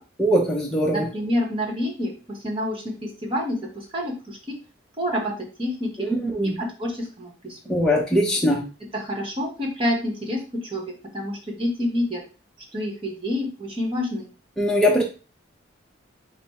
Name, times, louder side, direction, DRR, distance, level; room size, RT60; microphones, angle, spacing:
voice 1, 0.2-1.1 6.0-6.5 7.7-8.6 14.6-15.0, equal, 5° left, -3 dB, 0.6 m, -21 dB
voice 2, 0.9-4.5 5.0-5.3 5.6-6.1 6.4-7.8 8.9-12.2 12.7-14.3, left 1 dB, 30° right, -1 dB, 1.1 m, -28 dB
5.2 x 2.1 x 4.2 m, 0.34 s
head